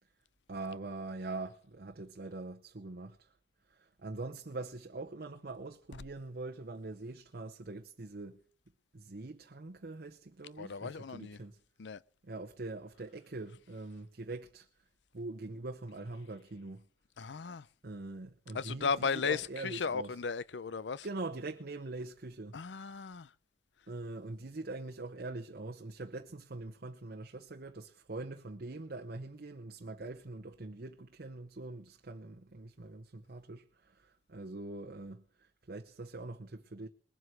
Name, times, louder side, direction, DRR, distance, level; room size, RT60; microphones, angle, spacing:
voice 1, 0.5-3.3 3.7-8.4 8.9-11.6 12.2-14.7 15.1-16.8 17.8-20.1 21.0-22.6 23.9-36.9, right 2 dB, 60° right, 0.8 m, -43 dB
voice 2, 10.6-11.4 11.8-12.0 17.2-17.6 18.5-21.1 22.5-23.3, left 5 dB, 85° left, 0.6 m, -35 dB
21.0 x 7.8 x 5.7 m
head